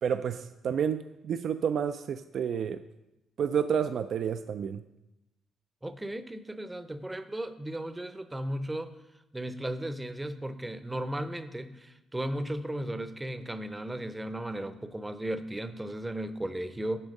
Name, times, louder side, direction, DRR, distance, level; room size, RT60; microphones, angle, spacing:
voice 1, 0.0-2.8 3.4-4.8, right 7 dB, 65° right, 10 dB, 0.3 m, -30 dB
voice 2, 5.8-8.9 9.3-17.0, right 1 dB, 10° right, 11 dB, 0.6 m, -35 dB
9.9 x 3.6 x 6.4 m, 0.94 s
cardioid pair, 90°, 0 cm